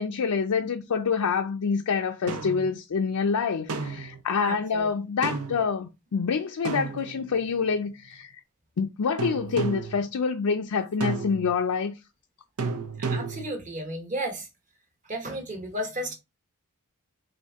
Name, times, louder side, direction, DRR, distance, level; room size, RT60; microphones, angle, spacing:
voice 1, 0.0-8.3 8.8-12.0, left 5 dB, 75° left, 0.4 m, -27 dB
sound 1, 2.3-2.7 3.7-4.2 5.2-5.6 6.6-7.5 9.2-10.0 11.0-11.6 12.6-13.5, right 4 dB, 75° right, 0.6 m, -32 dB
voice 2, 4.4-4.9 13.0-14.5 15.1-16.1, right 1 dB, 35° right, 1.1 m, -33 dB
4.2 x 2.6 x 3.5 m
head